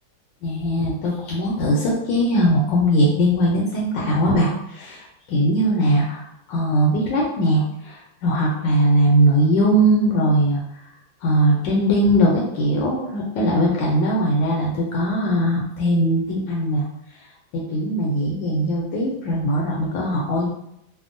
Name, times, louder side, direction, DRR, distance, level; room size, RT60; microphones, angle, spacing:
voice 1, 0.4-10.6 11.2-16.8 17.5-20.5, right 1 dB, 75° left, -3 dB, 1.2 m, -20 dB
3.4 x 2.1 x 2.5 m, 0.77 s
omnidirectional pair, 2.1 m